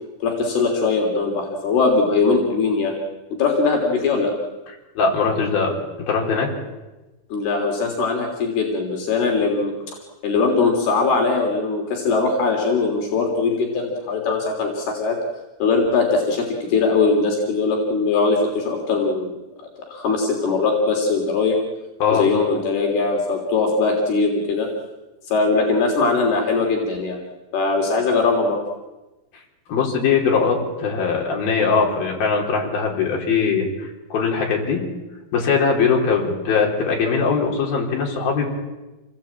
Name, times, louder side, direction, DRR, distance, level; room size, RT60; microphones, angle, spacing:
voice 1, 0.2-3.0 3.4-4.3 7.3-9.7 10.2-15.2 15.6-19.3 19.9-21.6 22.1-24.7 25.3-27.2 27.5-28.6, left 4 dB, 85° left, 1 dB, 5.3 m, -20 dB
voice 2, 5.0-5.7 6.1-6.5 22.0-22.3 29.7-34.8 35.3-38.5, left 5 dB, 70° left, 0 dB, 6.1 m, -21 dB
28.0 x 19.5 x 8.9 m, 1.1 s
omnidirectional pair, 4.4 m